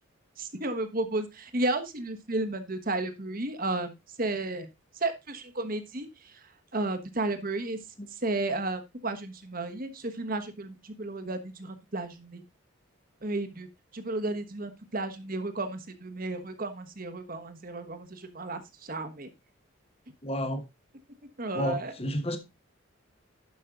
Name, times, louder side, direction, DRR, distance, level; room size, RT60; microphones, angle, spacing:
voice 1, 0.4-4.7 4.9-7.8 8.1-12.4 13.2-13.7 13.9-19.3 21.4-21.9, right 2 dB, 45° right, 1.3 m, -33 dB
voice 2, 20.2-20.6 21.5-22.4, equal, 30° left, 1.3 m, -30 dB
11.5 x 5.5 x 3.8 m
head